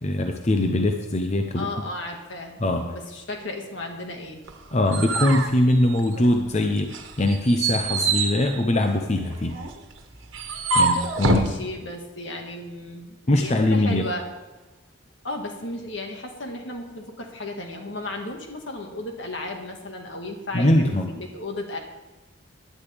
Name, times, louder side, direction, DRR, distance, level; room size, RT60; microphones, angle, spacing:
voice 1, 0.0-1.7 2.6-2.9 4.7-9.6 10.7-11.5 13.3-14.1 20.5-21.1, left 1 dB, 35° left, 4 dB, 0.7 m, -22 dB
voice 2, 1.6-2.6 2.9-4.4 11.2-14.3 15.2-21.8, left 2 dB, 70° left, 2 dB, 1.8 m, -34 dB
sound 1, 4.5-6.5 6.9-11.5, right 3 dB, 85° right, 1.4 m, -26 dB
15.5 x 10.5 x 3.5 m, 1.2 s
head